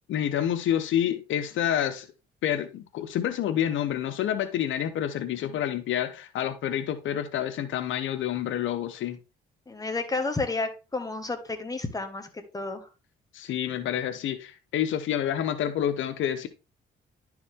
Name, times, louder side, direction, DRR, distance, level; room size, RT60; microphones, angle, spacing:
voice 1, 0.1-2.1 2.4-9.2 13.3-16.5, left 10 dB, 75° left, 0.8 m, -28 dB
voice 2, 9.7-12.9, left 3 dB, 20° left, 1.7 m, -31 dB
11.0 x 4.9 x 3.5 m
cardioid pair, 90°, 20 cm